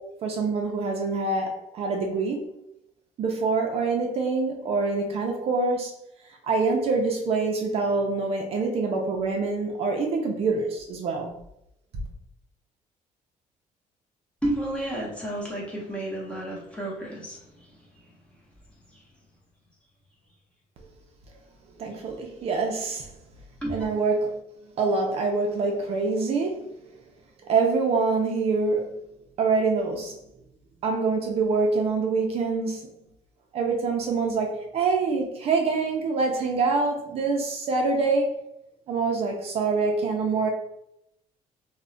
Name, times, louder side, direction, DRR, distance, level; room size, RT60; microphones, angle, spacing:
voice 1, 0.2-2.5 3.2-5.9 6.4-11.3 11.9-12.0 21.8-23.1 23.7-24.4 24.8-26.6 27.4-28.9 29.4-30.2 30.8-32.8 33.5-38.3 38.9-40.5, right 4 dB, 45° right, 1 dB, 0.4 m, -25 dB
voice 2, 14.4-17.4 23.6-23.8, right 1 dB, 10° left, -4 dB, 0.6 m, -31 dB
2.3 x 2.1 x 3.7 m, 0.80 s
cardioid pair, 175°, 14 cm